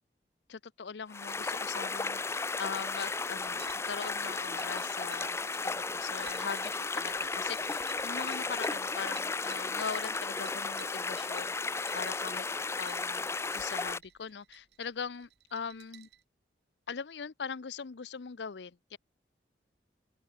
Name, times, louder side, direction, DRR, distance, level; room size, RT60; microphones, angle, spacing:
voice 1, 0.5-11.6 11.9-12.5 12.8-16.1 16.9-19.0, left 6 dB, 75° left, 0.6 m, -41 dB
sound 1, 1.1-14.0, left 4 dB, 15° left, 0.4 m, -34 dB
sound 2, 2.9-16.2, right 12 dB, 65° right, 1.5 m, -57 dB
open air
head